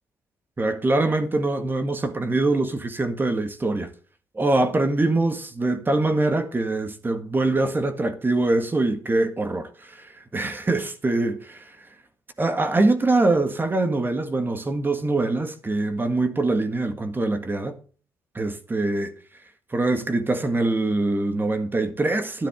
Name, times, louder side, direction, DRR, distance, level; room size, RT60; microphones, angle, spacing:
voice 1, 0.6-3.9 4.4-11.8 12.4-17.8 18.4-19.1 19.7-22.5, right 2 dB, 25° right, 1.8 m, -23 dB
11.5 x 10.0 x 3.7 m
supercardioid pair, 65°, 8 cm